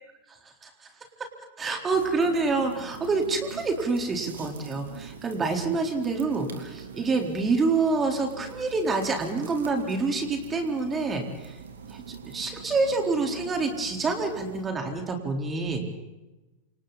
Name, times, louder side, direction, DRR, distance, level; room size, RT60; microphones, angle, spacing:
voice 1, 1.6-11.6 11.9-15.9, right 3 dB, 20° right, 4 dB, 4.2 m, -27 dB
sound 1, 1.9-14.6, right 6 dB, 65° right, 3.5 m, -43 dB
28.5 x 28.0 x 4.2 m, 1.1 s
figure-of-eight pair, 90°, 0 cm